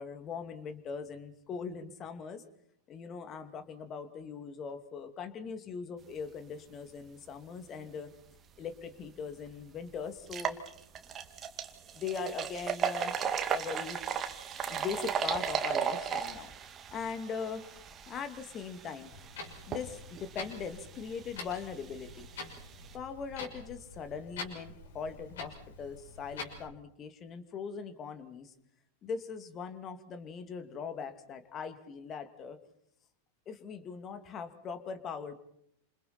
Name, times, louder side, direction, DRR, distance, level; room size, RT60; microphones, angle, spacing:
voice 1, 0.0-2.4 2.9-8.1 8.6-10.6 11.9-13.1 13.5-14.0 14.7-16.5 16.9-17.8 18.0-19.1 19.7-22.3 22.9-28.5 29.0-32.6 33.5-35.3, left 6 dB, 30° left, 9 dB, 2.6 m, -40 dB
sound 1, 8.9-9.0 9.5-9.6 10.2-22.9, right 7 dB, 25° right, 2.2 m, -37 dB
Clock, 19.1-26.7, left 4 dB, 60° left, 6.1 m, -46 dB
30.0 x 27.0 x 4.4 m, 0.74 s
figure-of-eight pair, 90°, 0 cm